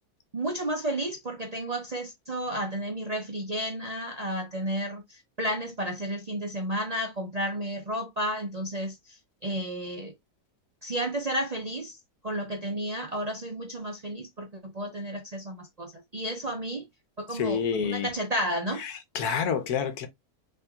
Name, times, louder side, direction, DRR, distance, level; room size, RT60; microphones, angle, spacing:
voice 1, 0.3-9.2 9.4-10.1 10.8-12.0 12.2-16.8 17.2-17.6 17.8-18.8, right 1 dB, 40° right, 0.6 m, -32 dB
voice 2, 17.3-18.1 18.8-20.1, left 7 dB, 80° left, 1.5 m, -28 dB
5.6 x 3.4 x 2.3 m
omnidirectional pair, 1.6 m